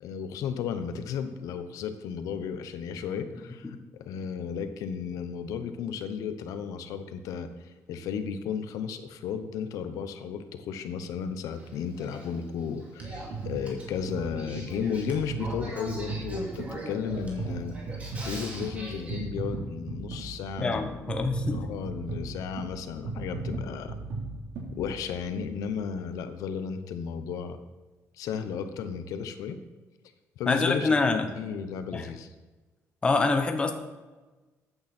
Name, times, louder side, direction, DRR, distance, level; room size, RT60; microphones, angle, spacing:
voice 1, 0.0-17.8 18.2-21.0 21.5-24.0 24.7-27.6 28.2-29.6 30.4-32.3, left 7 dB, 85° left, 9 dB, 1.0 m, -34 dB
Male speech man speaking / Female speech woman speaking / Conversation, 11.5-19.2, right 1 dB, 25° right, 3.0 m, -42 dB
sound 1, 13.0-25.4 26.0-26.1, right 3 dB, 70° right, 3.6 m, -37 dB
voice 2, 20.6-21.6 30.5-31.3 31.9-32.1 33.0-33.7, left 3 dB, 20° left, 6 dB, 1.0 m, -25 dB
14.0 x 9.5 x 4.4 m, 1.2 s
cardioid pair, 165°, 6 cm